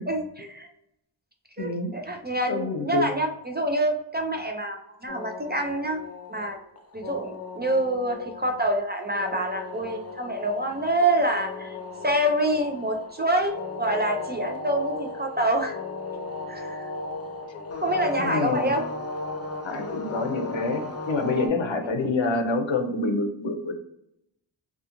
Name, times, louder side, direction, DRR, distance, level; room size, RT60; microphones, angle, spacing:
voice 1, 0.1-0.7 1.6-6.0 6.3-6.6 6.9-11.8 12.0-15.8 16.5-16.9 17.8-18.8 21.8-21.9, right 1 dB, 25° right, 3 dB, 0.4 m, -26 dB
voice 2, 1.6-1.9 2.5-3.1 18.2-18.8 19.6-23.7, left 3 dB, 75° left, 5 dB, 0.6 m, -27 dB
sound 1, 5.1-21.5, left 3 dB, 35° left, 0.4 m, -36 dB
2.4 x 2.4 x 2.8 m, 0.81 s
wide cardioid pair, 55°, 47 cm